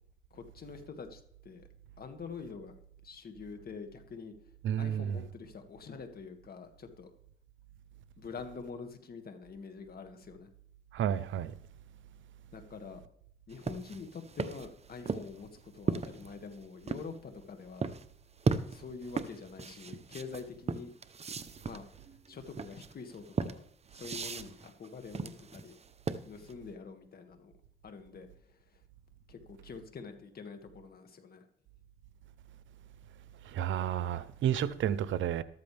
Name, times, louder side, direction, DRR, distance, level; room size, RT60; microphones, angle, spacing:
voice 1, 0.3-1.7 2.0-2.7 3.0-4.3 4.8-7.1 8.2-10.5 12.5-13.0 13.5-17.9 18.7-20.9 21.6-21.9 22.3-23.6 23.9-25.7 26.2-27.5 27.8-28.8 29.3-31.5, left 5 dB, 50° left, 2.1 m, -46 dB
voice 2, 4.6-5.2 10.9-11.5 33.5-35.4, right 10 dB, 75° right, 0.8 m, -31 dB
sound 1, 13.5-17.1 17.8-18.1 18.4-26.5, right 4 dB, 30° right, 0.8 m, -36 dB
13.5 x 13.0 x 3.5 m
cardioid pair, 90°, 20 cm